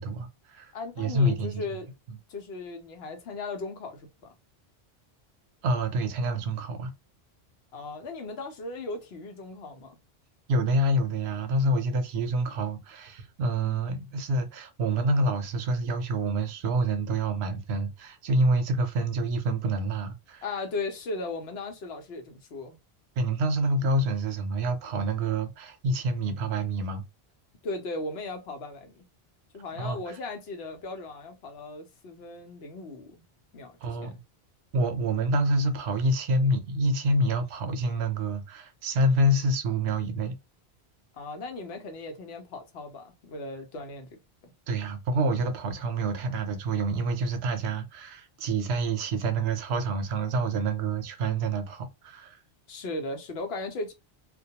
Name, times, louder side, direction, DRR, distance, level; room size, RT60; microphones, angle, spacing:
voice 1, 0.0-0.7 1.0-1.6 5.6-6.9 10.5-20.4 23.2-27.0 29.7-30.0 33.8-34.2 34.7-40.4 44.7-52.4, right 1 dB, 75° right, 0.8 m, -27 dB
voice 2, 0.7-1.9 2.3-4.3 7.7-10.0 20.4-22.8 27.6-29.0 29.5-33.2 33.5-34.2 41.1-44.5 52.7-53.9, left 3 dB, 70° left, 0.9 m, -37 dB
2.2 x 2.2 x 2.7 m
omnidirectional pair, 1.1 m